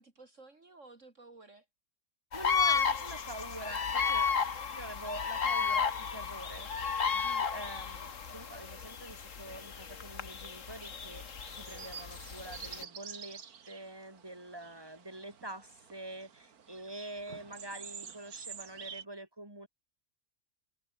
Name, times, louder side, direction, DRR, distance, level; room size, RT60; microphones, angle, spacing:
voice 1, 0.0-1.6 4.0-4.5, right 2 dB, 55° right, 3.3 m, -54 dB
sound 1, 2.3-12.8, left 6 dB, 60° left, 1.9 m, -33 dB
voice 2, 2.3-4.3 4.7-13.4 13.7-19.7, right 1 dB, 15° right, 4.6 m, -46 dB
sound 2, 10.8-19.0, right 7 dB, 75° right, 2.0 m, -49 dB
omnidirectional pair, 1.6 m